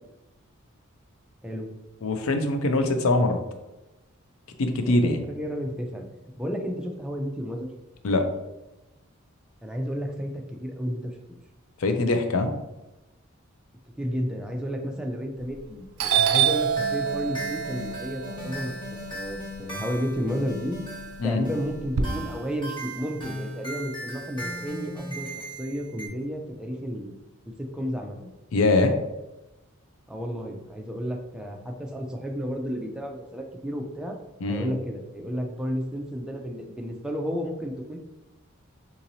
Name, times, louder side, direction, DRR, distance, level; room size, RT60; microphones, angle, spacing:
voice 1, 2.0-3.4 4.6-5.2 8.0-8.3 11.8-12.5 21.2-21.4 28.5-28.9 34.4-34.7, left 2 dB, 75° left, 6 dB, 0.5 m, -23 dB
voice 2, 4.8-7.7 9.6-11.4 14.0-18.8 19.1-20.8 21.2-25.3 25.6-27.1 27.6-28.3 30.1-34.2 34.5-38.0, equal, 5° right, 2 dB, 0.3 m, -32 dB
Doorbell, 15.4-15.7 16.0-20.1 20.5-22.0, right 8 dB, 90° right, 0.4 m, -26 dB
sound 1, 16.7-26.1, equal, 20° left, 0.9 m, -37 dB
3.8 x 2.9 x 2.6 m, 1.0 s
head